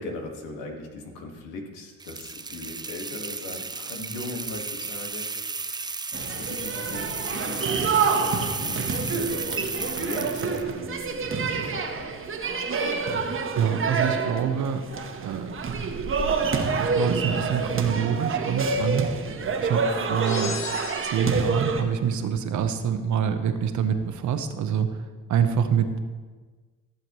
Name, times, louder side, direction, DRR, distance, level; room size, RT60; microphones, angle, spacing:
voice 1, 0.0-12.1, left 2 dB, 85° left, 2 dB, 1.7 m, -39 dB
sound 1, 2.0-10.7, right 4 dB, 15° right, 0.4 m, -34 dB
sound 2, 6.1-21.8, right 4 dB, 40° right, 1.1 m, -27 dB
voice 2, 13.6-14.9 15.2-15.6 16.8-19.1 19.6-20.5 21.0-24.9 25.3-26.0, right 7 dB, 65° right, 8 dB, 1.0 m, -25 dB
sound 3, 20.2-21.6, left 6 dB, 60° left, 1.1 m, -36 dB
15.0 x 7.0 x 3.1 m, 1.4 s
cardioid pair, 85°, 32 cm